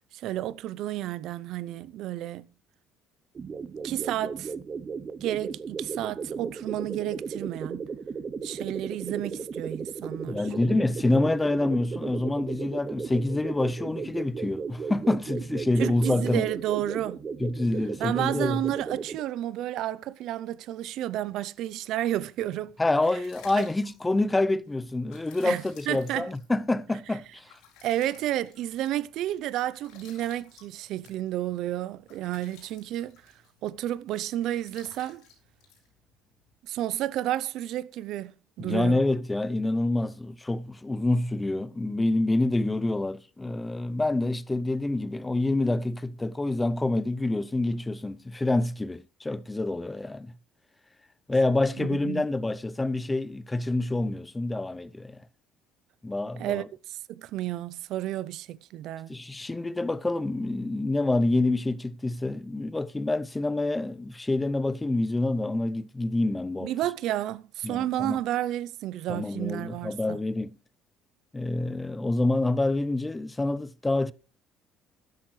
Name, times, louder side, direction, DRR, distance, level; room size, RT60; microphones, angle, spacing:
voice 1, 0.1-2.4 3.8-4.5 5.2-7.8 8.4-10.4 15.8-17.2 18.0-22.7 23.5-23.7 25.4-26.3 27.8-33.2 33.6-35.2 36.6-38.3 38.6-39.0 51.8-52.2 56.4-59.2 66.6-70.2, right 13 dB, 70° right, 0.5 m, -31 dB
sound 1, 3.3-19.2, right 5 dB, 35° right, 0.8 m, -36 dB
voice 2, 10.2-16.5 17.4-18.6 22.8-27.5 38.6-50.3 51.3-55.2 56.0-56.7 59.1-66.7 67.6-68.2 69.1-70.6 71.3-74.1, left 2 dB, 15° left, 0.6 m, -27 dB
sound 2, 22.8-36.5, left 6 dB, 85° left, 4.8 m, -56 dB
12.5 x 10.5 x 3.2 m
cardioid pair, 105°, 0 cm